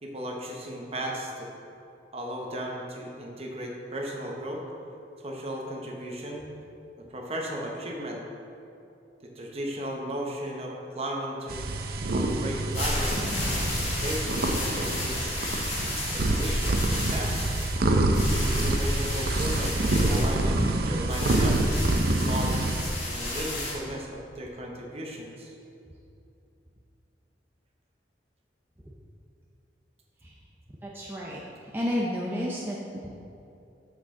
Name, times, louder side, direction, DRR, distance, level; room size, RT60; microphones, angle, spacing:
voice 1, 0.0-1.5 2.1-4.6 5.2-6.5 7.0-8.2 9.2-11.6 12.1-15.3 16.1-17.5 18.5-21.7 22.3-25.6, right 1 dB, 35° right, 0 dB, 1.0 m, -36 dB
sound 1, 11.5-22.8, right 2 dB, 55° right, 0.6 m, -26 dB
sound 2, 12.5-23.7, left 1 dB, 35° left, 1.6 m, -33 dB
voice 2, 30.8-31.4 31.7-33.1, equal, 10° right, -4 dB, 0.5 m, -31 dB
7.3 x 6.4 x 3.7 m, 2.7 s
head